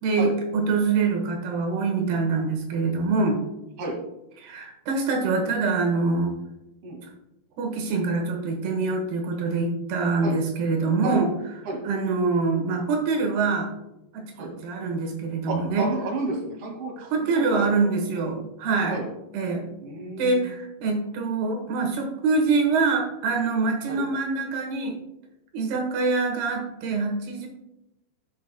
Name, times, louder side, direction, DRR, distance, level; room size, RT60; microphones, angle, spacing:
voice 1, 0.0-3.4 4.4-6.4 7.6-11.3 11.8-13.7 14.1-15.9 17.0-19.0 19.3-19.7 20.2-25.0 25.5-27.5, right 4 dB, 80° right, 2 dB, 3.2 m, -25 dB
voice 2, 15.5-17.7 18.1-18.3 18.9-19.1 19.8-20.4 23.9-24.1, right 2 dB, 45° right, -1 dB, 2.6 m, -31 dB
17.0 x 5.9 x 2.2 m, 0.90 s
omnidirectional pair, 4.5 m